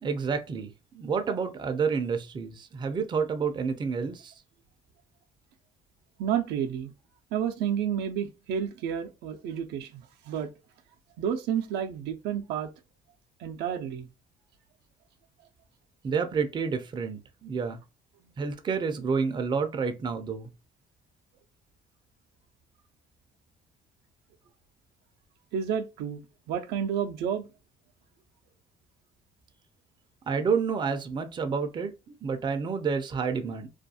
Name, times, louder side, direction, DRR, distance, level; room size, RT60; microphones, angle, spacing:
voice 1, 0.0-4.3 16.0-17.8 18.4-20.5 30.3-33.7, right 5 dB, 25° right, 0.4 m, -29 dB
voice 2, 6.2-6.9 7.3-10.5 11.2-12.7 13.4-14.1 25.5-26.2 26.5-27.5, right 8 dB, 80° right, 0.5 m, -30 dB
2.4 x 2.3 x 2.6 m
cardioid pair, 110°, 17 cm